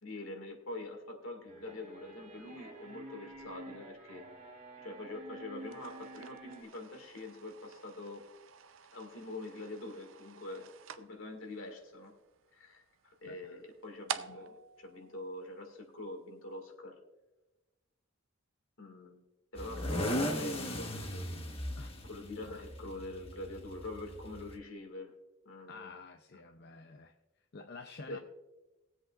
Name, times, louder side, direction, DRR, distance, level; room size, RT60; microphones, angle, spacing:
voice 1, 0.0-4.2 4.8-8.2 8.9-10.7 10.9-12.1 12.5-17.0 18.8-19.2 19.5-21.3 22.0-25.1 25.5-26.0 28.1-28.2, left 2 dB, 75° left, 4 dB, 2.0 m, -44 dB
sound 1, 1.5-6.6, right 2 dB, 35° right, 1.5 m, -50 dB
sound 2, 5.6-16.0, right 7 dB, 70° right, 0.6 m, -48 dB
voice 2, 13.3-13.6 21.8-21.9 25.7-27.1 27.5-28.2, left 4 dB, 50° left, 5 dB, 0.6 m, -49 dB
sound 3, 19.6-24.6, equal, 30° left, 1.1 m, -37 dB
20.5 x 7.9 x 2.4 m, 1.1 s
head